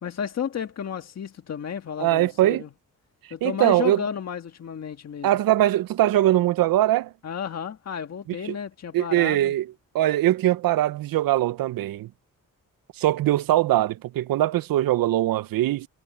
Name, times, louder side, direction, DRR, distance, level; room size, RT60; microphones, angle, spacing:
voice 1, 0.0-2.7 3.3-5.3 7.2-9.5, left 8 dB, 50° left, 1.7 m, -32 dB
voice 2, 2.0-2.6 3.4-4.0 5.2-7.1 8.4-8.5 8.9-9.7 9.9-12.1 13.0-15.9, right 14 dB, 90° right, 0.6 m, -21 dB
wide cardioid pair, 130°, 34 cm